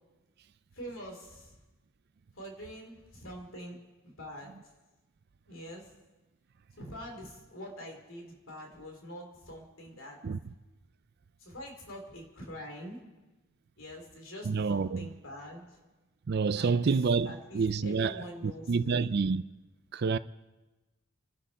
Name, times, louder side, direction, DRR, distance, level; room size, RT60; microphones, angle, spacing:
voice 1, 0.7-1.6 2.3-3.8 4.0-4.5 5.5-5.9 6.8-10.2 11.4-13.0 13.8-15.8 16.6-16.8 17.2-19.1, equal, 60° left, 3.4 m, -45 dB
voice 2, 14.5-15.1 16.3-18.1 18.4-19.4 19.9-20.2, right 5 dB, 45° right, 0.4 m, -28 dB
29.5 x 11.0 x 4.2 m
head